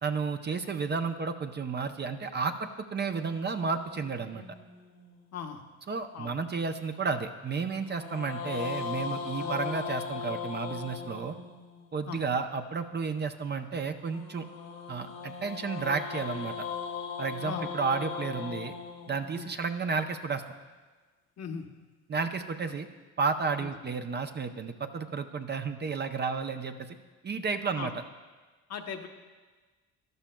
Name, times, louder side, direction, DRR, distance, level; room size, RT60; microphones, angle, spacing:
voice 1, 0.0-4.4 5.9-11.3 11.9-14.4 14.9-16.7 17.2-18.7 19.1-20.4 22.1-22.9 23.2-27.0 27.2-27.9, right 5 dB, 30° right, 7 dB, 0.6 m, -32 dB
sound 1, 3.1-5.5 7.8-12.0 14.1-20.3, left 6 dB, 85° left, 1.4 m, -39 dB
voice 2, 5.3-5.6 6.1-6.3 9.4-9.5 12.1-12.2 17.4-17.7 19.3-19.5 21.4-21.7 23.6-23.7 27.8-27.9 28.7-29.1, left 6 dB, 50° left, 4 dB, 1.0 m, -38 dB
13.0 x 11.5 x 2.3 m, 1.3 s
supercardioid pair, 70°, 33 cm